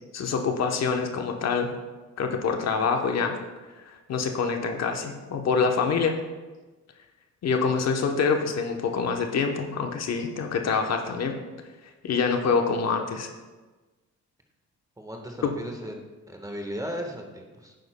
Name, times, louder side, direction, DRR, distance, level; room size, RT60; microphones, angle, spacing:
voice 1, 0.1-1.7 2.2-3.3 4.1-6.2 7.4-11.4 12.0-13.3, left 5 dB, 60° left, 4 dB, 1.0 m, -25 dB
voice 2, 15.0-15.9 16.3-17.8, equal, 10° right, 2 dB, 1.3 m, -36 dB
11.0 x 9.0 x 2.2 m, 1.2 s
cardioid pair, 90°, 30 cm